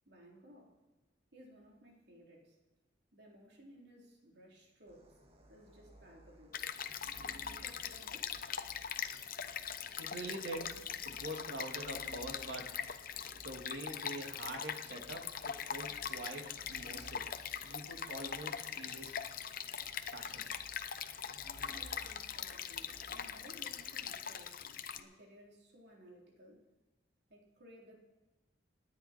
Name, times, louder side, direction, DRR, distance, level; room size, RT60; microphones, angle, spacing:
voice 1, 0.1-0.8 1.3-2.6 3.1-5.2 5.5-6.7 7.2-8.4 9.1-9.2 21.7-26.8 27.3-28.0, equal, 65° right, -1 dB, 3.4 m, -59 dB
sound 1, 4.9-24.1, right 1 dB, 35° right, 1.9 m, -59 dB
Stream, 6.5-25.0, left 8 dB, 50° left, 0.8 m, -42 dB
voice 2, 10.0-12.7 13.3-17.3 17.6-19.1 20.1-20.4, right 1 dB, 85° right, 2 dB, 2.4 m, -45 dB
28.5 x 10.5 x 4.4 m, 1.1 s
head